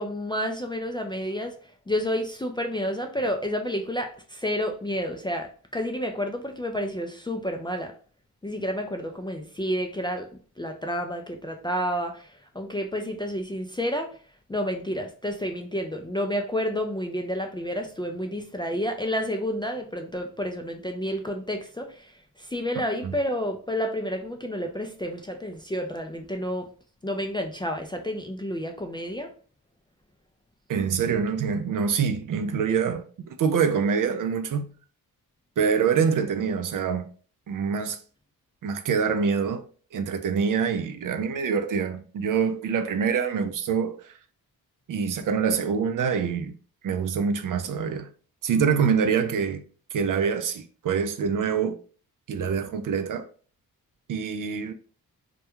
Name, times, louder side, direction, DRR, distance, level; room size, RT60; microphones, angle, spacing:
voice 1, 0.0-7.9 8.4-10.3 10.6-14.2 14.5-26.7 27.0-29.3, equal, 15° left, 0.3 m, -30 dB
voice 2, 30.7-34.7 35.6-37.1 37.5-38.0 38.6-39.6 39.9-44.1 44.9-46.5 46.8-48.1 48.4-49.6 49.9-51.8 52.3-53.3 54.1-54.7, right 6 dB, 55° right, 0.5 m, -25 dB
2.3 x 2.2 x 2.9 m
cardioid pair, 50°, 39 cm